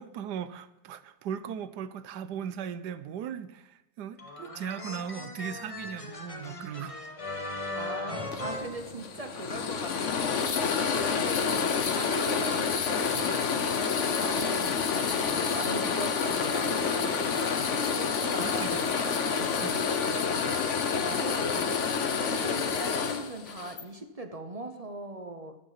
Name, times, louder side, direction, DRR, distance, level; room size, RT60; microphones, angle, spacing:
voice 1, 0.0-7.0 18.4-18.9 19.6-19.8 21.6-21.8, right 8 dB, 80° right, 1.3 m, -38 dB
sound 1, 4.2-9.6, left 2 dB, 20° left, 1.1 m, -39 dB
voice 2, 7.7-13.8 14.2-21.6 22.2-25.6, right 2 dB, 35° right, 0.6 m, -41 dB
sound 2, 8.3-23.8, left 6 dB, 55° left, 1.1 m, -28 dB
12.0 x 7.5 x 5.8 m
omnidirectional pair, 1.8 m